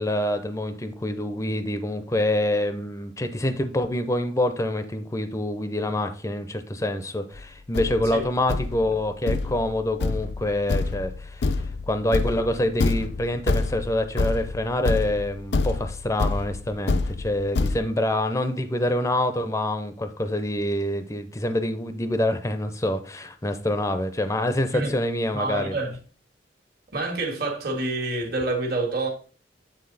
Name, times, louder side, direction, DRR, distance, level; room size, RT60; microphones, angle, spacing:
voice 1, 0.0-11.5 11.9-25.7, left 1 dB, 15° left, 0.6 m, -26 dB
Thump thud, 7.3-7.4 7.7-17.8, left 3 dB, 60° left, 0.5 m, -27 dB
voice 2, 25.3-26.0 26.9-29.1, right 2 dB, 55° right, 1.7 m, -27 dB
8.7 x 4.0 x 4.0 m
head